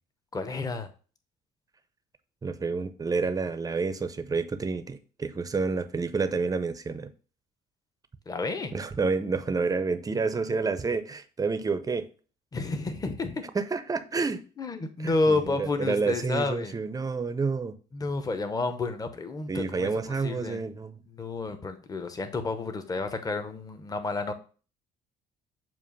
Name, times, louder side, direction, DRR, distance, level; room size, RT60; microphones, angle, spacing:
voice 1, 0.3-0.9 8.3-8.7 12.5-13.4 14.6-16.7 17.9-20.6 21.1-24.3, left 3 dB, 20° left, 0.8 m, -30 dB
voice 2, 2.4-7.1 8.7-12.1 13.5-14.4 15.0-17.7 19.5-21.0, right 4 dB, 20° right, 0.6 m, -29 dB
7.5 x 2.5 x 5.4 m
cardioid pair, 110°, 17 cm